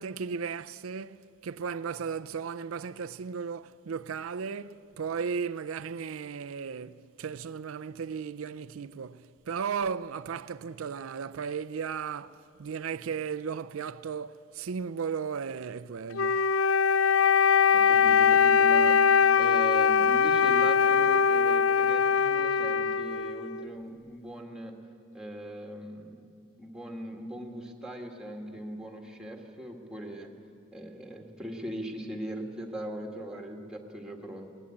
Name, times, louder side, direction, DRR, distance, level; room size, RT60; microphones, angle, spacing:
voice 1, 0.0-16.5, right 6 dB, 90° right, 0.5 m, -35 dB
Wind instrument woodwind instrument, 16.1-23.7, left 6 dB, 80° left, 0.4 m, -22 dB
voice 2, 17.7-24.8 25.1-26.3 26.6-30.3 30.7-34.5, right 1 dB, 5° right, 1.8 m, -40 dB
20.5 x 19.0 x 8.6 m
head